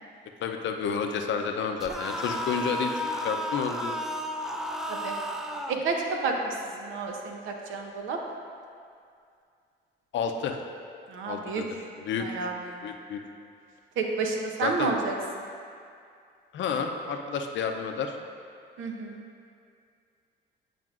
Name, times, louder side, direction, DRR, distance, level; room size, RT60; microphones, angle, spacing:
voice 1, 0.4-4.0 10.1-10.6 11.3-11.6 12.0-12.3 12.8-13.2 14.6-14.9 16.5-18.1, left 6 dB, 70° left, 4 dB, 0.6 m, -30 dB
sound 1, 1.8-5.8, equal, ahead, 0.3 m, -33 dB
voice 2, 5.7-8.2 11.1-11.6 12.2-12.8 14.0-15.1 18.8-19.2, right 4 dB, 85° right, 2 dB, 0.8 m, -30 dB
9.1 x 5.0 x 2.5 m, 2.3 s
cardioid pair, 90°, 20 cm